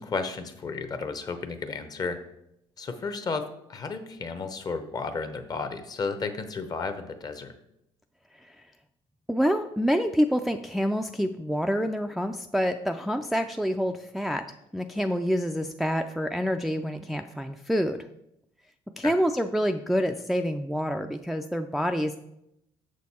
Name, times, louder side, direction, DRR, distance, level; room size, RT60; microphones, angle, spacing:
voice 1, 0.0-2.2 2.8-7.6 19.0-19.1, left 4 dB, 35° left, 9 dB, 0.8 m, -33 dB
voice 2, 9.3-14.4 14.7-18.1 19.0-22.2, equal, ahead, 6 dB, 0.3 m, -27 dB
6.7 x 6.3 x 4.2 m, 0.80 s
cardioid pair, 120°, 11 cm